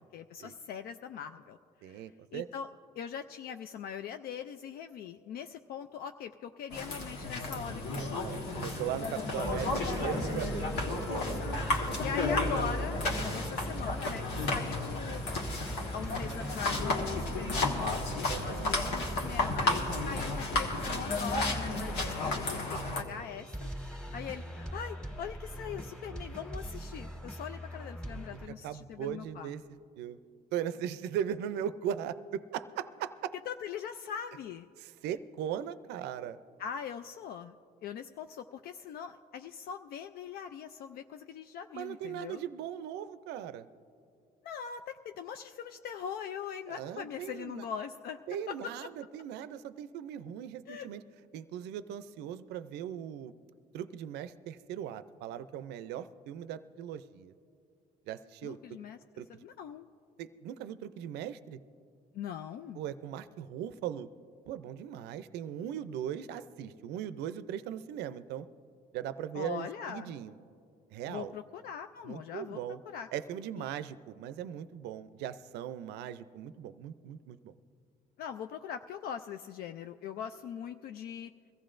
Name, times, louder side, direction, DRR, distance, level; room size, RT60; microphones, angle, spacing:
voice 1, 0.0-2.7 3.0-8.3 11.2-11.6 12.0-13.0 13.3-15.2 15.9-23.7 24.1-29.5 33.5-34.7 36.6-37.5 37.8-42.4 44.4-48.2 48.5-48.7 50.7-50.9 58.4-59.0 59.4-59.9 62.1-62.8 69.3-70.2 71.1-72.6 72.9-73.1 78.2-81.3, left 8 dB, 65° left, 8 dB, 0.4 m, -41 dB
voice 2, 1.8-2.5 7.9-10.7 11.9-12.1 18.3-18.8 28.6-29.6 30.0-30.2 30.5-33.3 34.8-36.4 41.7-43.7 46.7-47.7 48.3-51.0 51.3-53.3 53.7-57.3 58.1-58.6 59.2-59.3 60.2-61.6 62.7-64.1 64.5-68.5 68.9-70.3 70.9-71.3 72.0-72.8 73.1-77.5, right 10 dB, 80° right, 13 dB, 0.5 m, -39 dB
sound 1, 6.7-23.0, left 2 dB, 85° left, 1.6 m, -33 dB
sound 2, 9.4-28.5, right 1 dB, 5° left, 1.6 m, -40 dB
22.5 x 15.0 x 2.5 m, 2.4 s
cardioid pair, 110°, 17 cm